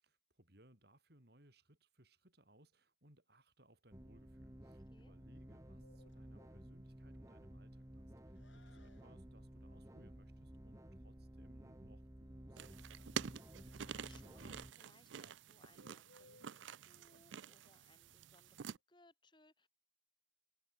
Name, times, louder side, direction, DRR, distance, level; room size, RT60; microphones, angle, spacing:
voice 1, 0.0-13.4, right 1 dB, 55° right, 4.2 m, -67 dB
sound 1, 3.9-14.7, right 1 dB, 15° right, 1.1 m, -55 dB
Bird, 5.8-18.8, left 2 dB, 75° left, 6.2 m, -71 dB
sound 2, 12.6-18.8, right 7 dB, 75° right, 0.5 m, -48 dB
voice 2, 13.7-19.7, left 2 dB, 25° left, 4.2 m, -69 dB
head